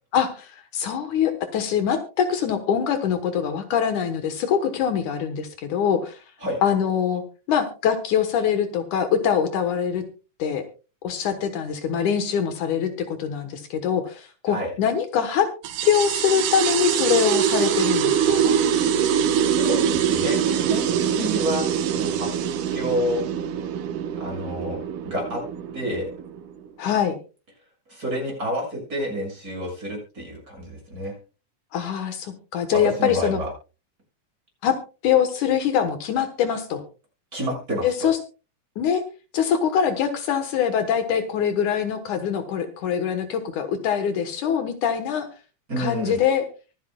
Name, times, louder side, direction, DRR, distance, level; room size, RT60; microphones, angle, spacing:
voice 1, 0.1-6.2 6.6-7.2 7.5-10.0 10.4-10.6 11.0-15.5 15.8-18.5 21.2-21.3 26.8-27.1 31.7-33.4 34.6-34.8 35.0-36.8 37.8-38.2 38.8-39.0 39.3-45.3 45.8-46.4, left 8 dB, 75° left, 8 dB, 2.6 m, -23 dB
sound 1, 15.6-26.7, right 8 dB, 80° right, 2.7 m, -24 dB
voice 2, 19.2-22.3 22.7-23.2 24.2-24.8 25.0-25.4 25.7-26.1 27.9-31.2 32.7-33.5 37.3-37.9 45.7-46.2, equal, 25° right, -1 dB, 7.2 m, -29 dB
24.0 x 9.4 x 2.3 m, 0.33 s
omnidirectional pair, 3.6 m